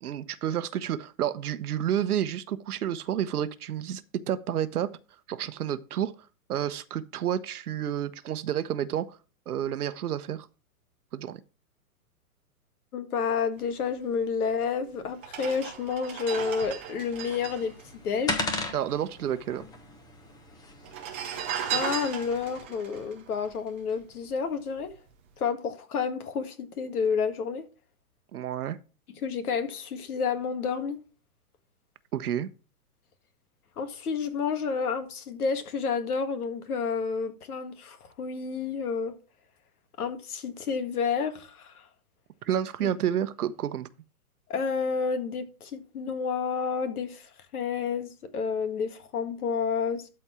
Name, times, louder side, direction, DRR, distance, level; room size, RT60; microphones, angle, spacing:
voice 1, 0.0-4.9 5.3-6.1 6.5-9.2 9.5-10.5 11.1-11.4 18.7-19.7 28.3-28.8 32.1-32.5 42.4-43.9, right 10 dB, 70° right, 1.0 m, -30 dB
voice 2, 12.9-17.7 18.0-18.4 21.7-24.9 25.4-27.6 29.2-31.0 33.8-39.1 40.0-41.9 42.8-42.9 44.5-50.1, left 6 dB, 70° left, 1.9 m, -30 dB
sound 1, 14.5-14.6 15.2-18.9 19.1-19.2 19.4-20.1 20.8-24.2 24.7-24.9, right 9 dB, 10° right, 0.3 m, -36 dB
sound 2, 17.1-22.6, left 2 dB, 10° left, 0.8 m, -37 dB
12.5 x 4.4 x 4.4 m
hypercardioid pair, 130°, 46 cm